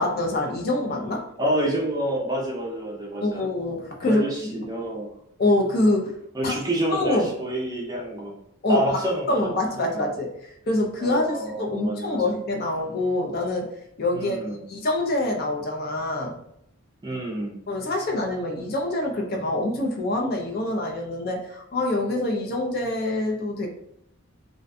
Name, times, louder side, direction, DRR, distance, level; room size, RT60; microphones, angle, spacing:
voice 1, 0.0-1.2 3.2-4.7 5.4-6.1 6.4-6.5 6.9-7.3 8.6-9.0 9.3-16.4 17.7-23.7, left 2 dB, 45° left, 1 dB, 0.4 m, -25 dB
voice 2, 1.4-3.4 4.1-5.1 6.3-8.4 8.7-9.5 9.9-10.1 11.0-12.2 14.2-14.6 17.0-17.5, right 1 dB, 20° right, -2 dB, 0.4 m, -28 dB
2.5 x 2.1 x 2.5 m, 0.78 s
head